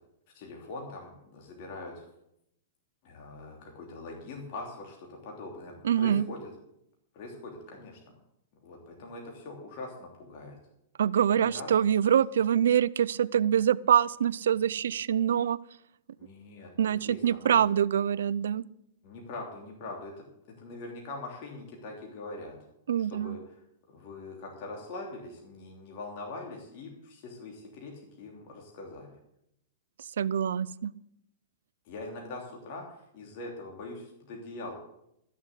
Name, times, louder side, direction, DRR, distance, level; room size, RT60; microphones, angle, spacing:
voice 1, 0.3-2.0 3.0-6.5 7.1-8.0 8.6-10.6 11.2-11.7 16.2-17.6 19.0-20.1 20.6-22.6 23.1-23.6 23.9-29.2 31.8-34.7, left 2 dB, 45° left, 0 dB, 3.1 m, -42 dB
voice 2, 5.8-6.2 11.0-15.6 16.8-18.6 22.9-23.4 30.2-30.9, right 9 dB, 80° right, 20 dB, 0.5 m, -25 dB
13.0 x 7.3 x 8.2 m, 0.78 s
hypercardioid pair, 145°, 0 cm